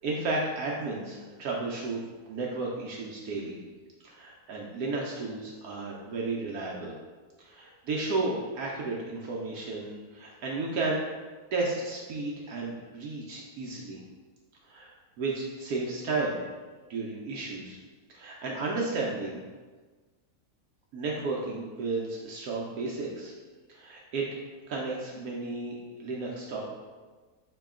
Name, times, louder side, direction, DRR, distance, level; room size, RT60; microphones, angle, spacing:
voice 1, 0.0-2.0 2.3-3.6 4.0-6.9 7.4-11.0 11.5-14.0 14.7-14.9 15.2-16.4 16.9-17.8 18.1-19.4 20.9-23.3 23.7-24.2 24.7-26.7, right 3 dB, 75° right, -3 dB, 1.1 m, -33 dB
4.8 x 3.0 x 3.6 m, 1.4 s
omnidirectional pair, 1.6 m